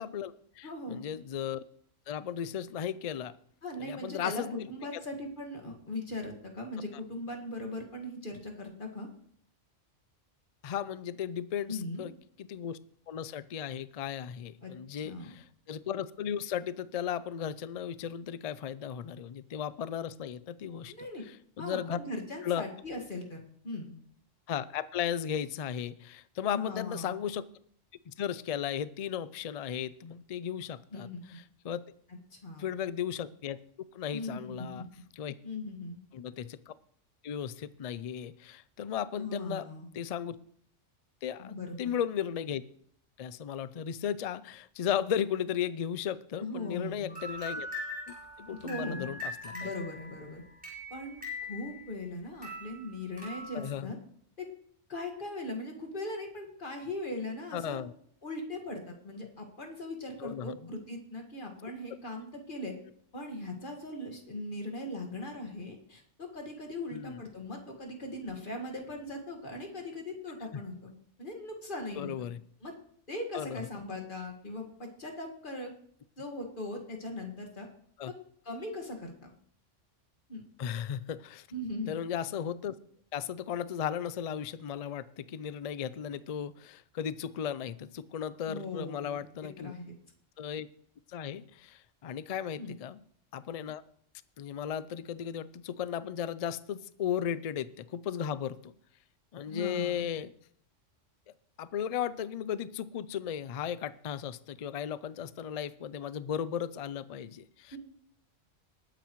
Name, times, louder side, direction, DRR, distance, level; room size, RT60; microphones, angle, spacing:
voice 1, 0.0-1.6 2.1-3.3 3.8-4.7 4.9-5.0 10.6-12.1 12.4-12.8 13.1-22.0 22.4-22.7 24.5-27.4 28.1-31.8 32.6-33.6 33.9-34.8 35.2-35.3 36.1-36.7 37.2-39.7 39.9-40.4 41.2-42.6 43.2-47.7 48.1-49.7 53.5-53.9 57.5-57.9 60.2-60.7 66.9-67.2 72.0-72.4 73.3-73.7 78.0-78.1 80.6-81.5 81.9-82.7 83.1-89.7 90.4-90.7 91.1-93.0 93.3-93.8 94.4-98.7 99.3-100.3 101.6-107.8, left 9 dB, 60° left, 16 dB, 0.3 m, -36 dB
voice 2, 0.6-1.0 3.6-9.1 11.7-12.1 14.6-14.7 15.0-15.3 20.9-21.2 21.6-23.4 23.6-23.9 26.5-27.2 30.9-31.4 32.3-32.7 34.1-34.9 35.4-36.0 39.2-39.9 41.4-41.9 46.4-47.2 48.5-49.1 49.5-50.4 50.9-51.2 51.5-54.0 54.4-54.5 54.9-57.8 58.2-62.7 63.1-70.9 71.2-72.3 72.6-72.7 73.1-75.7 76.2-77.7 78.1-78.2 78.5-79.3 80.3-80.4 81.5-81.9 88.5-89.9 92.6-92.8 99.5-100.0 107.7-107.8, left 2 dB, 45° left, 2 dB, 2.0 m, -39 dB
sound 1, 47.1-52.1 52.4-53.7, left 2 dB, 5° right, 4.8 m, -42 dB
20.0 x 9.1 x 3.1 m, 0.65 s
omnidirectional pair, 1.2 m